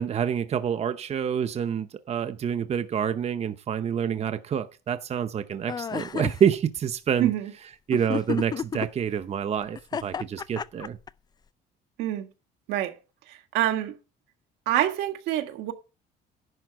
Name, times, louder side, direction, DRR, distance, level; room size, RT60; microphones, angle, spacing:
voice 1, 0.0-7.3 7.9-11.0, right 8 dB, 40° right, 0.8 m, -27 dB
sound 1, 5.7-6.4 7.9-8.9 9.8-11.1, left 6 dB, 25° left, 0.4 m, -30 dB
voice 2, 7.2-7.5 12.0-12.3 12.7-13.0 13.3-14.0 14.7-15.7, right 13 dB, 90° right, 1.7 m, -26 dB
11.0 x 4.5 x 7.7 m
cardioid pair, 110°, 17 cm